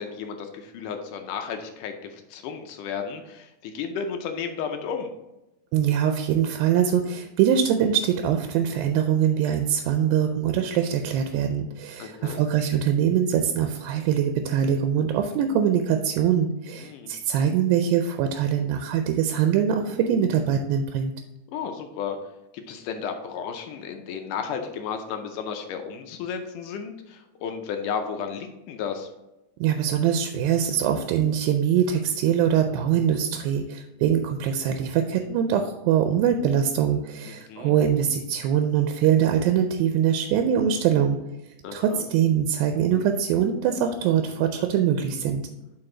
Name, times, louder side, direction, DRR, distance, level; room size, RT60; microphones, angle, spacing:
voice 1, 0.0-5.1 12.0-12.4 16.8-17.1 21.5-22.2 22.5-29.1 37.3-37.7 41.6-42.0, left 6 dB, 80° left, 5 dB, 2.0 m, -33 dB
voice 2, 5.7-21.1 29.6-41.2 41.7-45.4, right 9 dB, 85° right, 6 dB, 2.3 m, -23 dB
7.8 x 4.4 x 3.7 m, 0.94 s
omnidirectional pair, 4.1 m